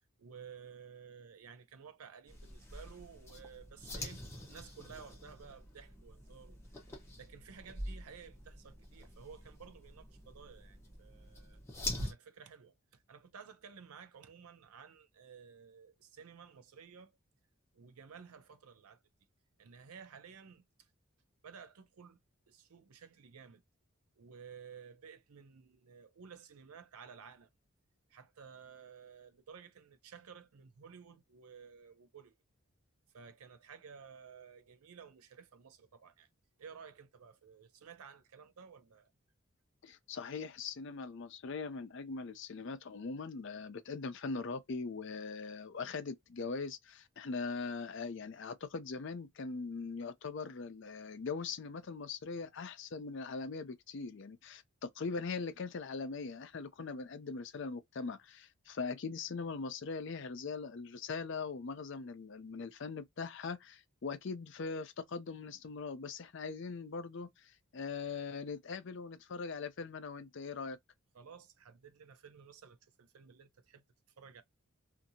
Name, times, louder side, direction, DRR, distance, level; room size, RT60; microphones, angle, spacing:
voice 1, 0.2-11.6 12.0-17.2 17.7-19.0 19.6-20.9 21.4-22.2 22.5-23.6 24.2-27.5 28.1-32.4 33.1-36.3 36.6-39.1 71.1-73.8 74.2-74.4, right 6 dB, 85° right, 0.5 m, -54 dB
sound 1, 2.3-12.1, left 1 dB, 10° left, 0.8 m, -45 dB
voice 2, 39.8-70.8, left 4 dB, 55° left, 0.4 m, -41 dB
2.7 x 2.5 x 2.6 m
head